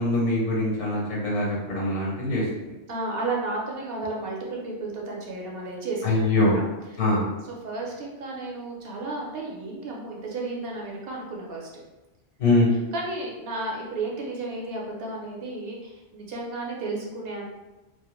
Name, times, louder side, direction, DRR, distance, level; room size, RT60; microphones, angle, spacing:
voice 1, 0.0-2.4 6.0-6.6 7.0-7.3 12.4-12.7, left 2 dB, 75° left, -4 dB, 1.0 m, -23 dB
voice 2, 2.9-6.6 6.9-7.0 7.4-11.8 12.9-17.5, right 2 dB, 60° right, -2 dB, 0.7 m, -33 dB
2.3 x 2.1 x 2.9 m, 1.1 s
omnidirectional pair, 1.2 m